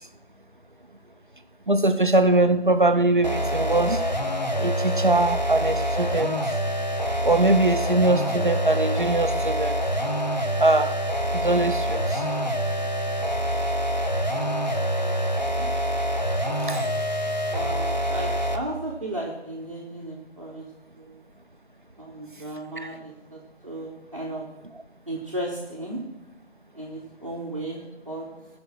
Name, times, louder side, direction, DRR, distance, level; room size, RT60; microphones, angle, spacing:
voice 1, 1.7-4.0 4.6-6.4 7.2-9.8 10.6-11.0 11.3-12.3 16.7-16.9 22.8-22.9, right 2 dB, 45° right, 9 dB, 0.7 m, -22 dB
sound 1, 3.2-18.7, equal, 40° left, 0.8 m, -26 dB
voice 2, 15.0-15.7 17.5-20.7 20.9-21.2 22.0-24.4 25.1-26.0 26.7-28.3, right 1 dB, 30° right, -5 dB, 1.3 m, -35 dB
16.0 x 5.4 x 6.2 m, 0.96 s
figure-of-eight pair, 170°, 34 cm